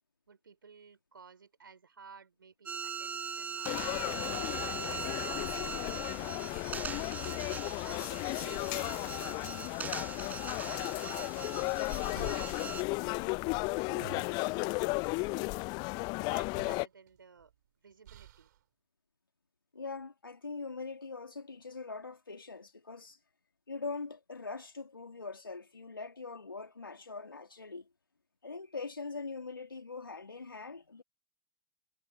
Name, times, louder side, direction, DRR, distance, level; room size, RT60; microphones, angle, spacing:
voice 1, 0.3-5.3 5.9-10.1 10.6-13.7 14.1-15.7 16.2-17.5 17.8-18.5, right 5 dB, 75° right, 3.6 m, -56 dB
sound 1, 2.7-12.8, right 6 dB, 15° right, 0.5 m, -41 dB
sound 2, 3.6-16.9, left 28 dB, 40° left, 0.7 m, -34 dB
sound 3, 11.3-12.9 13.7-14.7 16.2-16.3 16.5-17.5 18.0-18.6, right 13 dB, 60° right, 3.6 m, -51 dB
voice 2, 19.7-23.2 23.7-27.9 28.4-31.0, left 4 dB, 80° left, 2.8 m, -42 dB
figure-of-eight pair, 90°, 11 cm